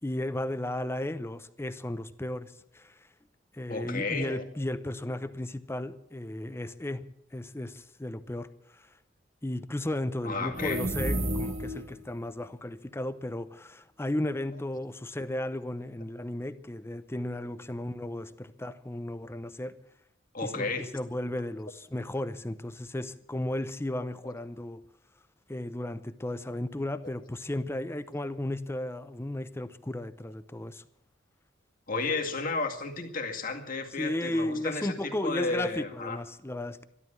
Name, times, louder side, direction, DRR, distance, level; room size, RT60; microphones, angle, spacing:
voice 1, 0.0-3.0 3.5-7.0 7.3-8.5 8.7-8.9 9.4-19.8 20.4-24.8 25.5-30.8 34.0-36.8, left 1 dB, 15° left, 0.7 m, -34 dB
voice 2, 3.7-4.4 10.2-10.8 20.3-20.9 24.2-24.3 31.9-36.2, left 3 dB, 50° left, 2.1 m, -33 dB
sound 1, 10.5-12.0, right 1 dB, 35° right, 1.3 m, -31 dB
13.0 x 12.5 x 8.6 m
head